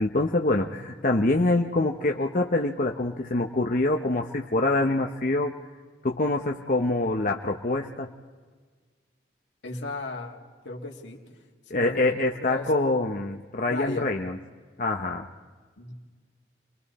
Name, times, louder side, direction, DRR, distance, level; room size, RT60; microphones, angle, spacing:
voice 1, 0.0-5.6 6.0-8.1 11.7-14.4 14.8-15.3, left 2 dB, 45° left, 2 dB, 0.9 m, -25 dB
voice 2, 9.6-11.2 11.7-12.1 12.4-13.0 13.7-14.2 15.8-15.9, left 3 dB, 75° left, 0 dB, 2.7 m, -35 dB
29.5 x 22.5 x 4.2 m, 1.5 s
head